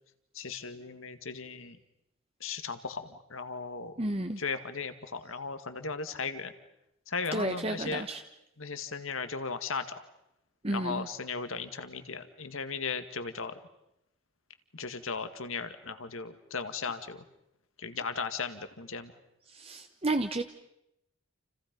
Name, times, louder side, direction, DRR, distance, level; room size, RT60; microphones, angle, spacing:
voice 1, 0.3-1.8 2.4-4.0 4.4-6.5 7.1-8.1 8.6-10.0 10.7-13.6 14.7-17.2 17.8-19.1, left 4 dB, 80° left, 2.0 m, -36 dB
voice 2, 4.0-4.4 7.3-8.2 10.6-11.1 19.5-20.4, right 2 dB, 30° right, 1.0 m, -32 dB
29.5 x 29.5 x 5.4 m
head